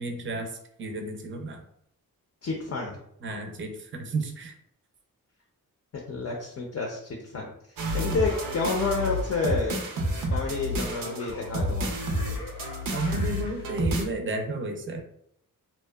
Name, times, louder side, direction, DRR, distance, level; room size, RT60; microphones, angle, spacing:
voice 1, 0.0-1.6 3.2-4.5 12.9-15.0, right 2 dB, 35° right, 4 dB, 0.4 m, -32 dB
voice 2, 2.4-3.0 6.1-7.5 7.9-9.8 10.3-11.9, left 4 dB, 45° left, 0 dB, 0.5 m, -29 dB
sound 1, 7.8-14.1, equal, 90° right, 0.5 m, -30 dB
Laughter, 8.1-13.6, left 1 dB, 85° left, 0.7 m, -43 dB
2.6 x 2.1 x 2.2 m, 0.71 s
cardioid pair, 85°, 34 cm